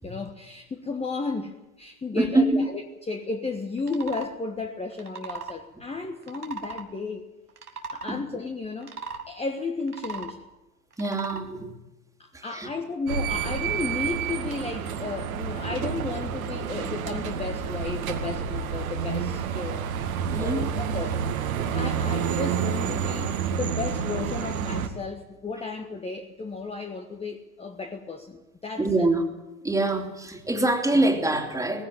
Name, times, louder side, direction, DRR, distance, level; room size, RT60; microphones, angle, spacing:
voice 1, 0.0-7.2 7.7-9.0 9.3-10.4 12.2-19.9 20.4-21.2 21.6-29.1, left 4 dB, 15° left, 4 dB, 1.5 m, -33 dB
voice 2, 2.1-2.7 8.1-8.2 11.0-11.8 12.3-12.7 20.3-20.7 21.6-21.7 28.8-29.3 29.6-31.8, right 2 dB, 5° right, 4 dB, 2.8 m, -25 dB
sound 1, 3.8-4.3 4.9-5.6 6.2-6.9 7.5-8.2 8.8-9.2 9.8-10.4 10.9-11.4, right 4 dB, 85° right, 2.1 m, -37 dB
sound 2, 13.1-24.9, right 7 dB, 65° right, 2.2 m, -29 dB
19.5 x 15.5 x 9.0 m, 1.0 s
figure-of-eight pair, 85°, 44 cm